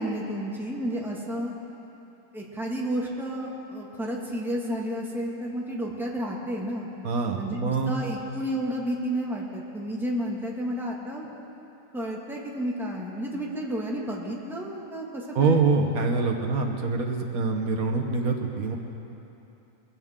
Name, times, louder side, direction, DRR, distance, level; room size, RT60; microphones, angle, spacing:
voice 1, 0.0-1.5 2.3-6.9 7.4-11.3 11.9-15.6, equal, ahead, -3 dB, 1.7 m, -31 dB
voice 2, 7.0-8.0 15.3-18.8, right 4 dB, 70° right, 3 dB, 1.5 m, -25 dB
22.5 x 16.0 x 3.7 m, 2.9 s
omnidirectional pair, 1.6 m